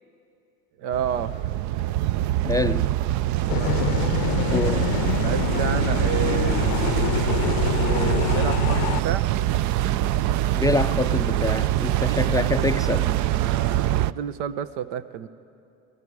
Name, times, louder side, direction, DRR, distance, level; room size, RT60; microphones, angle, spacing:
voice 1, 0.8-1.3 3.4-3.9 5.2-6.6 7.9-9.3 12.9-15.3, right 9 dB, 70° right, 14 dB, 0.9 m, -31 dB
sound 1, 0.9-14.1, right 13 dB, 50° right, 0.5 m, -24 dB
voice 2, 2.4-2.9 4.5-4.9 10.5-13.1, left 3 dB, 10° left, 8 dB, 0.4 m, -25 dB
sound 2, 3.5-9.0, left 17 dB, 65° left, 0.6 m, -26 dB
28.5 x 19.0 x 4.8 m, 2.6 s
hypercardioid pair, 80°, 40 cm